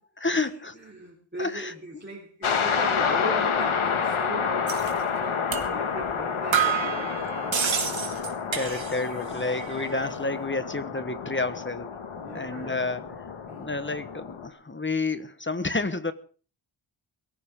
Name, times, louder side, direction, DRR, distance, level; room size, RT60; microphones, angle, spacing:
voice 1, 0.2-0.8 1.4-1.7 8.1-8.2 8.5-12.0 12.3-13.3 13.6-16.1, left 3 dB, 25° left, 11 dB, 1.2 m, -30 dB
voice 2, 0.7-8.1 12.2-13.1 13.5-13.7, right 2 dB, 20° right, -2 dB, 3.6 m, -39 dB
sound 1, 2.4-14.5, left 6 dB, 85° left, 1.9 m, -29 dB
sound 2, 4.7-4.9 5.5-5.7 6.0-6.1 6.5-9.2 9.4-10.0, right 7 dB, 70° right, 2.4 m, -29 dB
22.5 x 14.5 x 3.7 m, 0.39 s
wide cardioid pair, 95°, 48 cm